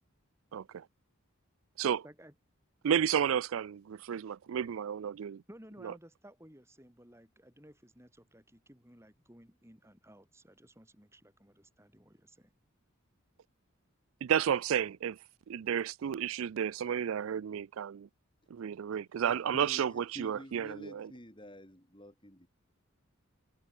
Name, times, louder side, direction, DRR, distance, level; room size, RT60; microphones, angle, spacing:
voice 1, 0.5-0.9 1.8-2.0 2.8-5.4 5.8-5.9 14.2-15.2 15.5-18.1 18.5-21.1, right 8 dB, 70° right, 0.4 m, -32 dB
voice 2, 5.5-12.5, equal, 10° right, 7.2 m, -56 dB
voice 3, 19.2-22.5, equal, 20° left, 5.2 m, -50 dB
head